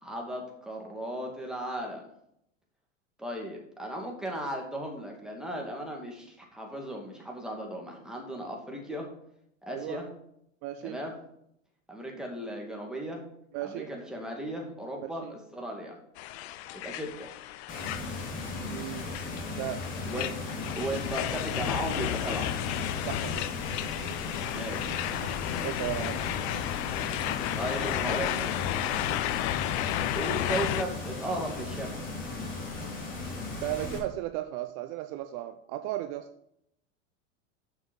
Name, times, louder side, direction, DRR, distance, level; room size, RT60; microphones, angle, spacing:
voice 1, 0.0-2.0 3.2-9.1 9.6-10.1 10.8-11.1 11.9-13.2 13.6-16.0 16.7-17.3 20.1-20.4 20.8-22.4 24.5-25.0 27.5-28.5 30.1-32.0, right 1 dB, ahead, 0 dB, 2.3 m, -36 dB
voice 2, 9.7-10.0 10.6-11.0 13.5-13.9 15.0-15.3 18.6-19.2 19.6-19.8 23.1-23.5 25.2-25.3 25.6-26.2 33.6-36.3, right 14 dB, 50° right, 10 dB, 0.6 m, -35 dB
sound 1, 16.2-30.8, left 13 dB, 60° left, 0.6 m, -33 dB
sound 2, 17.7-34.0, left 2 dB, 30° left, 3.7 m, -37 dB
7.4 x 6.0 x 6.2 m, 0.75 s
hypercardioid pair, 90°, 38 cm